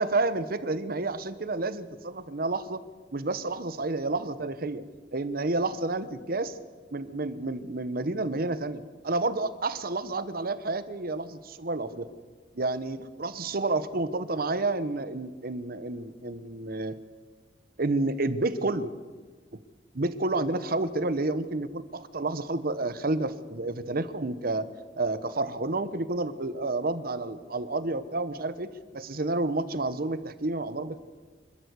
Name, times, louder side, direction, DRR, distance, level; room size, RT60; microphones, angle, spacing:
voice 1, 0.0-2.8 3.1-4.8 5.1-6.6 6.9-12.1 12.6-16.9 17.8-18.9 19.9-24.7 25.0-31.0, right 2 dB, 55° right, 14 dB, 1.0 m, -30 dB
26.0 x 13.0 x 8.2 m, 1.4 s
head